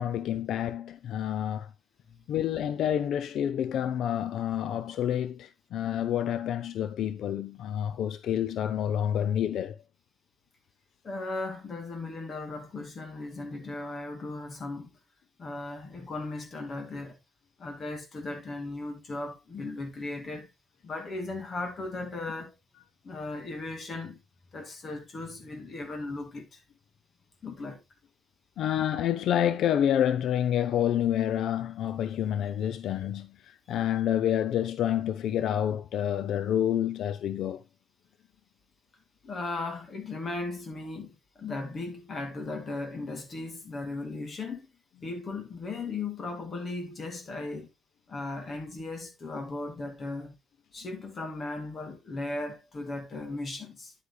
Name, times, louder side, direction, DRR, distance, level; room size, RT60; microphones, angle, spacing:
voice 1, 0.0-1.7 2.3-9.8 28.6-37.6, left 10 dB, 80° left, 0.5 m, -28 dB
voice 2, 11.0-14.9 15.4-17.2 17.6-20.5 20.8-22.5 23.0-24.2 24.5-26.6 27.4-27.8 32.8-32.9 39.2-44.7 45.0-47.7 48.1-50.3 50.7-53.9, left 2 dB, 35° left, 2.4 m, -37 dB
9.9 x 8.3 x 2.2 m
wide cardioid pair, 175°, 0 cm